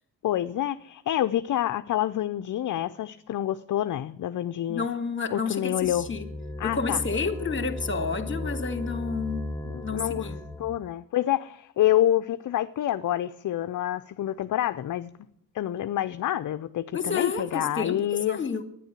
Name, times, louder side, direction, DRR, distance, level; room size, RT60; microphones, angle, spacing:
voice 1, 0.2-4.9 5.3-6.1 6.6-7.0 9.6-10.3 10.6-15.1 15.5-18.4, left 12 dB, 50° left, 0.6 m, -27 dB
voice 2, 4.7-6.3 6.6-9.5 9.8-10.4 16.9-18.6, left 5 dB, 30° left, 2.0 m, -30 dB
sound 1, 5.8-10.9, left 1 dB, 10° left, 0.8 m, -36 dB
11.0 x 10.0 x 8.2 m
cardioid pair, 85°, 40 cm